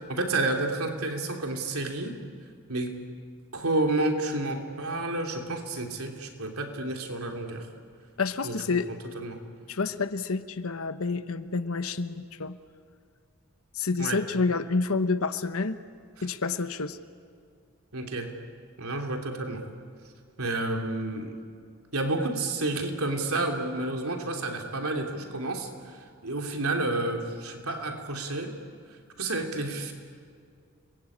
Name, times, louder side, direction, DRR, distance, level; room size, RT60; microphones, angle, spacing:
voice 1, 0.0-2.2 2.7-3.1 3.5-7.7 8.4-9.4 14.0-14.2 17.9-18.4 18.8-19.6 20.4-21.4 21.9-28.5 29.2-29.9, right 2 dB, 80° right, 3 dB, 3.2 m, -30 dB
voice 2, 8.2-8.9 9.7-12.6 13.7-15.8 16.2-17.0, left 4 dB, 75° left, 11 dB, 1.1 m, -28 dB
30.0 x 22.0 x 8.7 m, 2.3 s
head